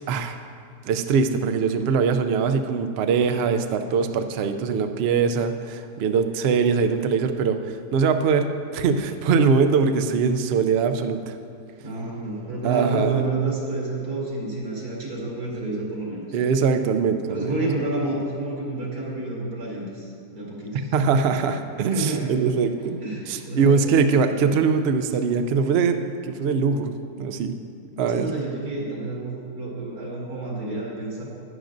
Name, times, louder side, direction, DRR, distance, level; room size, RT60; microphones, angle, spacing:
voice 1, 0.1-0.4 0.8-11.4 12.6-13.2 16.3-17.5 20.7-23.0 23.3-27.5 28.0-28.3, right 5 dB, 70° right, 8 dB, 0.6 m, -22 dB
voice 2, 11.8-16.2 17.3-20.9 21.8-22.4 23.0-23.9 28.2-31.2, right 2 dB, 90° right, -4 dB, 2.6 m, -29 dB
11.0 x 10.0 x 2.6 m, 2.3 s
omnidirectional pair, 1.6 m